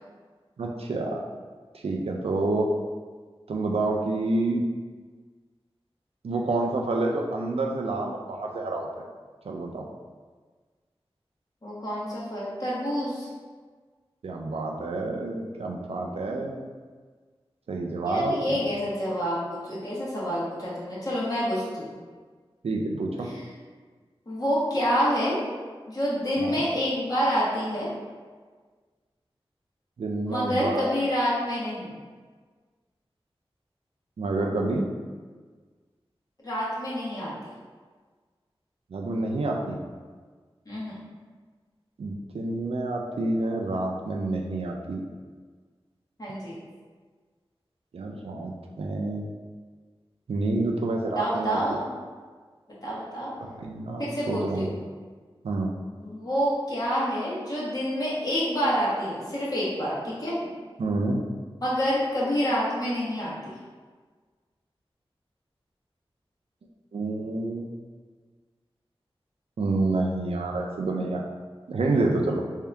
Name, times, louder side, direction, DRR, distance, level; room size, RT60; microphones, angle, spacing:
voice 1, 0.6-1.2 1.7-2.7 3.5-4.6 6.2-8.9 9.4-9.9 14.2-16.6 17.7-18.6 22.6-23.3 26.4-26.6 30.0-30.8 34.2-34.9 38.9-39.8 42.0-45.0 47.9-49.2 50.3-51.8 53.4-54.7 55.4-55.7 60.8-61.2 66.9-67.8 69.6-71.2 71.7-72.4, right 2 dB, 85° right, 1 dB, 0.4 m, -28 dB
voice 2, 11.6-13.3 18.0-21.9 23.2-23.4 24.3-25.4 25.9-27.9 30.3-31.9 36.4-37.3 40.6-41.0 46.2-46.5 51.1-51.9 52.8-53.3 54.0-54.7 56.0-60.4 61.6-63.3, equal, 40° left, -8 dB, 1.4 m, -27 dB
3.5 x 2.7 x 3.4 m, 1.5 s
wide cardioid pair, 55°, 10 cm